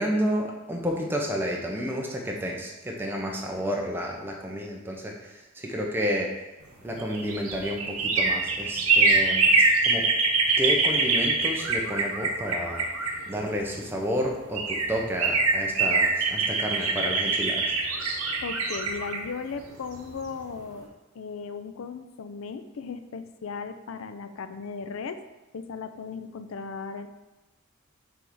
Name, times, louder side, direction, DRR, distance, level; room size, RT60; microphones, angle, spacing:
voice 1, 0.0-6.3 6.8-9.6 9.8-10.1 10.6-12.8 13.3-17.7, equal, 10° right, -1 dB, 0.7 m, -30 dB
sound 1, 6.9-13.7 14.2-14.3 14.5-20.3 20.7-20.8, right 3 dB, 75° right, 0.9 m, -24 dB
voice 2, 18.4-20.9 21.1-25.2 25.5-27.1, left 5 dB, 70° left, 9 dB, 0.4 m, -36 dB
6.1 x 3.4 x 4.6 m, 1.1 s
head